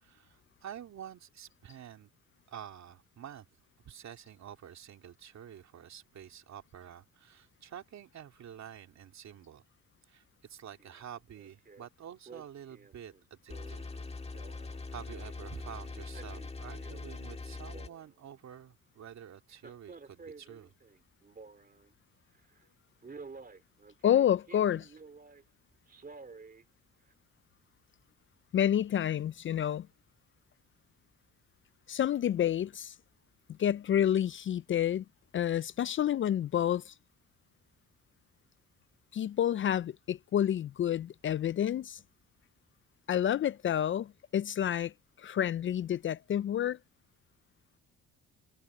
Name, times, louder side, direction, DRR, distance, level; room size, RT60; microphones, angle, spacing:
voice 1, 0.0-2.1 2.5-3.5 3.9-9.6 10.1-14.0 14.6-20.7, right 9 dB, 65° right, 2.9 m, -48 dB
Male speech man speaking, 10.8-11.0 11.4-11.9 12.3-15.5 15.9-17.3 17.5-18.4 19.5-21.9 22.3-22.6 23.0-25.4 25.9-26.6 27.1-27.2, right 4 dB, 30° right, 2.9 m, -51 dB
sound 1, 13.5-17.9, left 3 dB, 20° left, 1.7 m, -42 dB
voice 2, 24.0-24.9 28.5-29.9 31.9-32.9 33.6-35.0 35.3-36.9 39.1-42.0 43.1-44.9 45.2-46.8, left 10 dB, 40° left, 0.4 m, -29 dB
cardioid pair, 90°, 30 cm